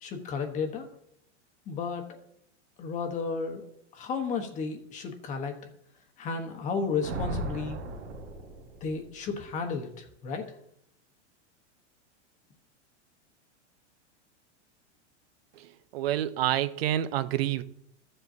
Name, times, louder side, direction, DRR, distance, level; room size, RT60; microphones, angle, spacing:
voice 1, 0.0-0.9 1.7-2.1 2.8-3.7 3.9-5.6 6.2-7.8 8.8-10.5, left 5 dB, 20° left, 1.1 m, -33 dB
Thunder, 7.0-9.2, right 2 dB, 75° right, 2.3 m, -36 dB
voice 2, 15.9-17.6, right 12 dB, 55° right, 0.7 m, -28 dB
14.0 x 7.7 x 2.7 m
supercardioid pair, 165°, 35 cm